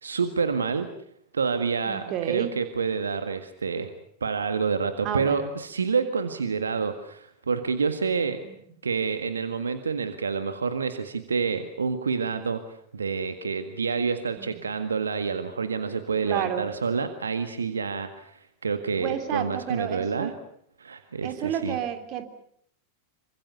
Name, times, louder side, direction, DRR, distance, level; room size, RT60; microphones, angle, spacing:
voice 1, 0.0-0.9 1.3-3.9 4.2-8.4 8.8-20.3 20.8-21.8, right 5 dB, 75° right, 9 dB, 1.8 m, -28 dB
voice 2, 1.9-2.5 5.0-5.5 8.4-8.6 14.4-14.7 16.3-16.6 19.0-20.3 21.2-22.2, right 10 dB, 40° right, 8 dB, 3.5 m, -31 dB
27.0 x 25.0 x 6.9 m, 0.68 s
figure-of-eight pair, 90°, 0 cm